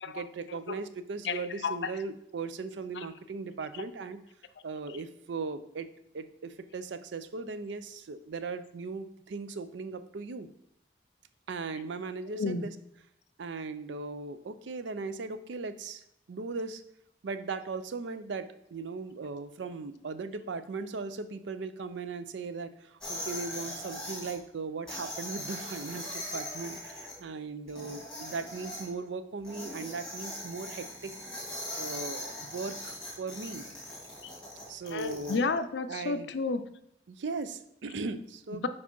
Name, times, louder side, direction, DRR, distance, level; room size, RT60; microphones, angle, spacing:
voice 1, 0.1-4.2 4.6-5.9 6.1-10.5 11.5-12.7 13.4-16.8 17.2-31.1 31.8-33.7 34.7-35.4 35.9-36.3 37.1-38.7, right 4 dB, 85° right, 12 dB, 0.5 m, -38 dB
voice 2, 1.2-1.9 3.0-3.1 12.4-12.7 34.2-34.3 34.9-36.7 38.5-38.7, left 4 dB, 75° left, 11 dB, 0.4 m, -32 dB
sound 1, 23.0-24.3 24.9-27.1 27.7-28.8 29.4-35.3, left 1 dB, 5° left, 1.7 m, -40 dB
5.0 x 4.7 x 5.3 m, 0.75 s
head